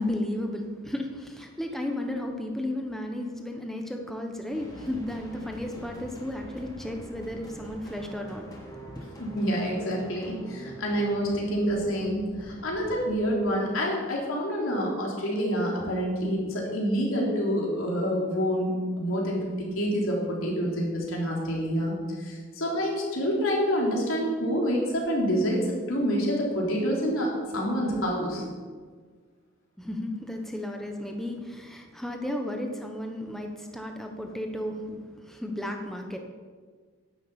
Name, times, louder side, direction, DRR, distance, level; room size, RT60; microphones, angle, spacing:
voice 1, 0.0-9.0 29.8-36.2, left 1 dB, ahead, 3 dB, 1.1 m, -34 dB
sound 1, 4.5-13.3, right 1 dB, 20° left, 2.9 m, -45 dB
voice 2, 9.2-19.4 19.7-28.4, equal, 90° left, -2 dB, 3.9 m, -27 dB
11.0 x 7.6 x 8.6 m, 1.5 s
head